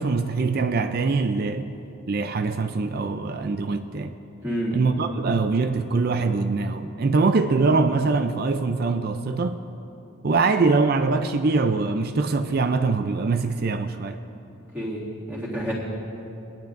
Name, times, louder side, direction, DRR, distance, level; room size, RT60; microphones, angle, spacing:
voice 1, 0.0-1.7 2.1-4.1 4.7-9.6 10.2-14.2, right 3 dB, 45° right, 8 dB, 0.4 m, -23 dB
voice 2, 4.4-4.8 14.7-15.7, equal, 10° right, -9 dB, 2.3 m, -29 dB
23.5 x 10.5 x 2.6 m, 2.8 s
head